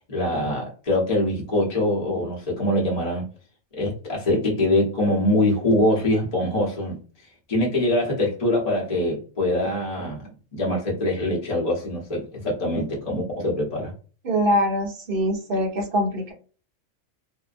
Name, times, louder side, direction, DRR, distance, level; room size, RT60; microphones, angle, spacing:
voice 1, 0.1-3.2 3.7-7.0 7.5-10.2 10.5-13.9, left 1 dB, 35° left, -3 dB, 0.9 m, -23 dB
voice 2, 14.2-16.3, equal, 50° right, 2 dB, 0.9 m, -23 dB
2.7 x 2.1 x 2.4 m, 0.38 s
omnidirectional pair, 1.4 m